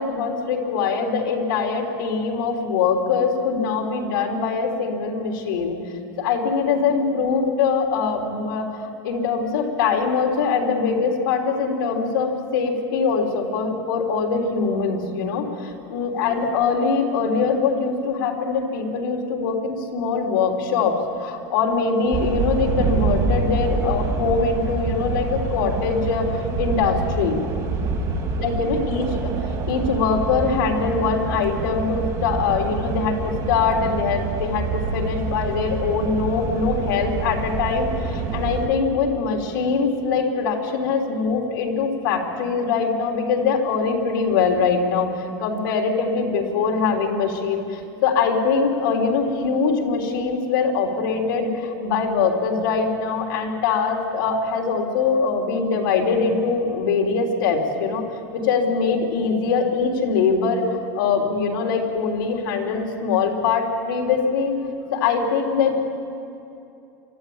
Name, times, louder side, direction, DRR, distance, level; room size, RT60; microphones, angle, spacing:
voice 1, 0.0-5.8 6.2-27.4 28.4-29.3 29.7-47.6 48.0-58.0 58.3-64.6 64.9-65.9, left 5 dB, 85° left, 1 dB, 3.5 m, -22 dB
sound 1, 22.1-38.7, right 4 dB, 35° right, 3.5 m, -26 dB
24.5 x 13.5 x 8.8 m, 2.7 s
supercardioid pair, 145°, 11 cm